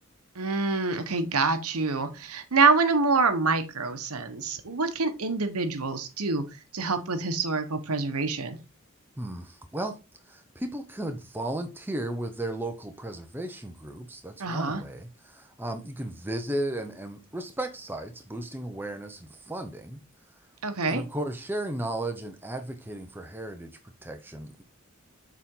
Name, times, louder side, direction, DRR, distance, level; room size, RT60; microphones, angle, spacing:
voice 1, 0.4-6.4 6.7-8.6 14.4-14.8 20.6-21.0, right 4 dB, 85° right, 1.1 m, -26 dB
voice 2, 9.2-10.0 10.3-20.0 20.9-24.6, right 1 dB, 10° right, 0.7 m, -35 dB
6.9 x 4.2 x 3.8 m
head